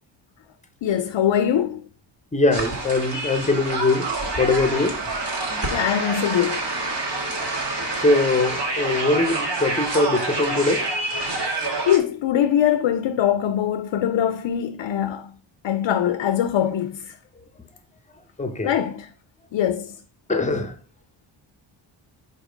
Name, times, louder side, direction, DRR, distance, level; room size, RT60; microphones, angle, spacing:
voice 1, 0.8-1.8 5.7-6.6 11.9-15.3 15.6-17.1 18.6-19.1 19.5-19.9, left 10 dB, 70° left, 0.6 m, -22 dB
voice 2, 2.3-5.0 5.5-5.7 8.0-10.9 18.4-18.8 20.3-20.7, left 2 dB, 15° left, 0.8 m, -22 dB
sound 1, 2.5-12.0, right 2 dB, 55° right, 1.8 m, -27 dB
5.1 x 4.1 x 5.1 m
wide cardioid pair, 130°, 47 cm